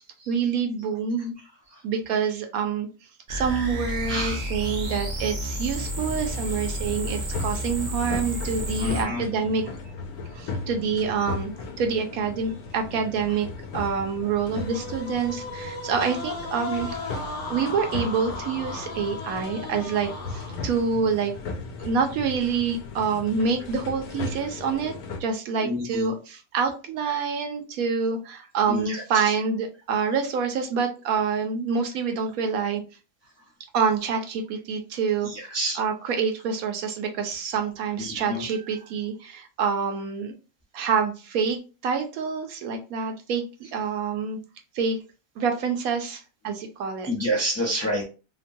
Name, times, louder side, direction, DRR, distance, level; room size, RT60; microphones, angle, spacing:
voice 1, 0.3-1.3 1.8-2.9 3.3-9.7 10.3-11.5 11.8-13.5 13.7-17.0 17.5-21.3 21.8-24.9 25.2-32.8 33.7-40.3 40.7-41.6 41.8-43.4 43.7-44.4 44.7-45.0 45.4-47.1, right 6 dB, 75° right, 5 dB, 1.0 m, -27 dB
sound 1, 3.3-9.0, equal, 50° right, 0.5 m, -31 dB
sound 2, 5.8-25.2, left 3 dB, 85° left, 1.1 m, -37 dB
voice 2, 8.8-9.2 25.6-26.1 28.7-29.0 35.3-35.8 38.0-38.4 47.1-48.0, left 1 dB, 15° left, -2 dB, 0.6 m, -28 dB
sound 3, 14.5-20.9, left 3 dB, 60° left, 0.9 m, -36 dB
2.9 x 2.2 x 2.5 m, 0.32 s
omnidirectional pair, 1.6 m